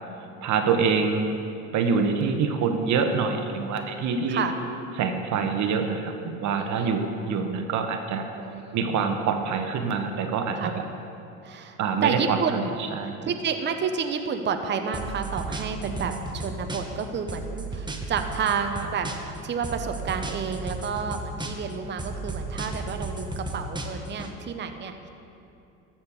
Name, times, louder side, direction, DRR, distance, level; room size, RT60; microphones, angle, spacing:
voice 1, 0.4-1.3 1.7-4.4 5.0-8.3 8.7-10.8 11.8-13.2 15.8-16.2, right 5 dB, 50° right, 5 dB, 1.1 m, -26 dB
voice 2, 6.6-6.9 8.4-8.8 10.6-10.7 11.4-12.8 13.2-19.1 19.4-25.1, right 6 dB, 30° right, 6 dB, 0.8 m, -30 dB
sound 1, 14.9-17.0 17.3-19.4 19.6-21.7 22.0-24.3, right 2 dB, 10° right, 1.1 m, -34 dB
13.0 x 4.4 x 7.1 m, 2.7 s
hypercardioid pair, 80°, 37 cm